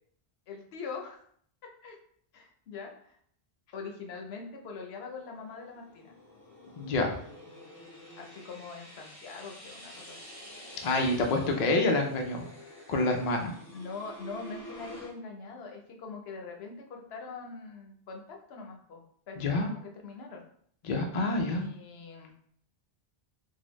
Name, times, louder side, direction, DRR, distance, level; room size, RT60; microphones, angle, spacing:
voice 1, 0.5-1.2 1.8-2.0 2.3-3.2 3.7-6.1 8.2-10.2 13.7-20.5 21.5-22.4, left 4 dB, 80° left, 2 dB, 0.9 m, -43 dB
sound 1, 5.0-15.1, left 1 dB, 35° left, 1.0 m, -49 dB
voice 2, 6.8-7.2 10.8-12.4 12.9-13.5 19.4-19.7 20.8-21.6, left 2 dB, 50° left, 2 dB, 0.5 m, -27 dB
3.8 x 2.0 x 3.0 m, 0.63 s
omnidirectional pair, 1.0 m